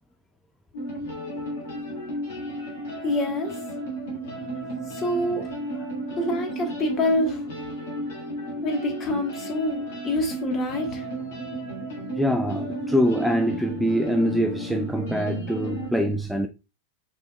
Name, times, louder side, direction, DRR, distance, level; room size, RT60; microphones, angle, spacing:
sound 1, 0.7-15.9, right 1 dB, 55° left, 1.9 m, -33 dB
voice 1, 3.0-3.6 4.9-5.9 6.2-7.4 8.6-11.1, left 1 dB, 30° left, 1.3 m, -27 dB
voice 2, 12.2-16.5, equal, ahead, 0.4 m, -24 dB
5.4 x 4.1 x 2.3 m
figure-of-eight pair, 90°, 0 cm